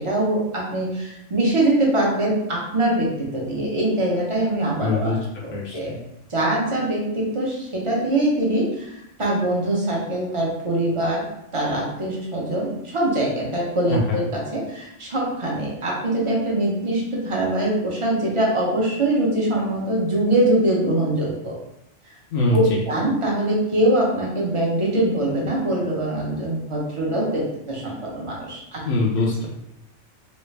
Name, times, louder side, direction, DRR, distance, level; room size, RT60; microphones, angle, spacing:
voice 1, 0.0-6.0 6.3-11.2 11.5-21.6 22.5-28.8, right 1 dB, 30° right, -4 dB, 0.8 m, -23 dB
voice 2, 4.8-5.2 5.5-6.0 13.9-14.2 22.3-22.8 28.8-29.5, left 2 dB, 85° left, -3 dB, 1.0 m, -22 dB
3.2 x 2.4 x 3.2 m, 0.82 s
omnidirectional pair, 1.3 m